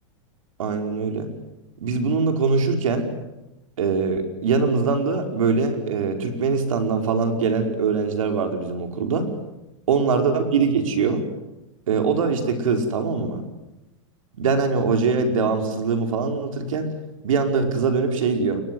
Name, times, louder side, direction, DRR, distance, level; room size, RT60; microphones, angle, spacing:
voice 1, 0.6-1.3 1.8-3.1 3.8-9.3 9.9-11.2 11.9-13.5 14.4-16.9 17.2-18.6, right 4 dB, 90° right, 5 dB, 5.3 m, -22 dB
29.5 x 23.0 x 8.0 m, 0.96 s
supercardioid pair, 135°, 17 cm